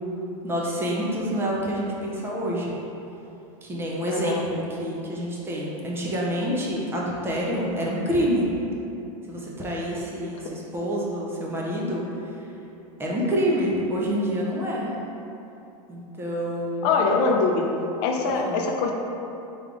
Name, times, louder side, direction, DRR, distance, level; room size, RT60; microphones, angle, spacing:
voice 1, 0.4-2.8 3.6-8.5 9.3-12.4 13.0-14.9 15.9-16.9 18.3-18.6, equal, 15° right, -4 dB, 0.6 m, -27 dB
voice 2, 4.1-4.5 16.8-17.7 18.0-18.9, left 4 dB, 45° left, 1 dB, 0.5 m, -23 dB
3.5 x 3.4 x 3.7 m, 2.9 s
supercardioid pair, 140°, 18 cm